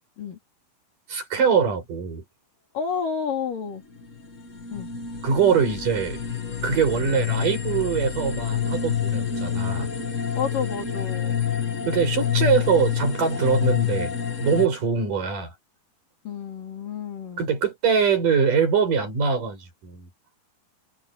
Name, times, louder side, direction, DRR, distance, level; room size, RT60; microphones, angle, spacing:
voice 1, 1.1-2.2 5.2-6.2 6.6-9.9 11.9-14.1 14.4-15.5 17.4-20.1, right 6 dB, 55° right, 7.7 m, -23 dB
voice 2, 2.7-3.8 4.7-4.9 10.3-11.4 16.2-17.4, left 6 dB, 60° left, 4.5 m, -30 dB
sound 1, 4.0-14.7, left 8 dB, 75° left, 0.7 m, -27 dB
omnidirectional pair, 4.5 m